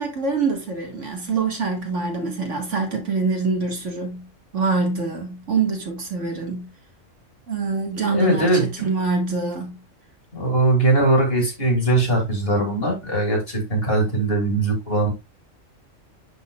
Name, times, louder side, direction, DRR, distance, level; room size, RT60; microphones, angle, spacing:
voice 1, 0.0-4.3 4.5-6.7 7.5-9.8, right 4 dB, 65° right, 2.1 m, -25 dB
voice 2, 8.1-8.9 10.3-15.1, right 2 dB, 45° left, 3.0 m, -20 dB
11.0 x 4.2 x 2.4 m
omnidirectional pair, 1.4 m